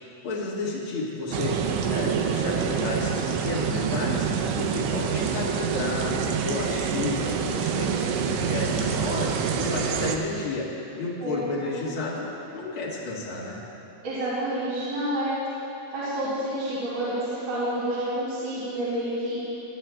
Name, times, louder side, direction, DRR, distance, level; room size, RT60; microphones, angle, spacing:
voice 1, 0.2-4.3 4.6-7.9 8.2-10.7 10.9-13.6, left 2 dB, 65° left, -5 dB, 1.3 m, -31 dB
sound 1, 1.3-10.2, right 7 dB, 90° right, 2.8 m, -26 dB
voice 2, 14.0-15.3 15.9-19.4, right 1 dB, 70° right, -13 dB, 4.8 m, -29 dB
22.5 x 9.2 x 2.2 m, 2.8 s
omnidirectional pair, 4.9 m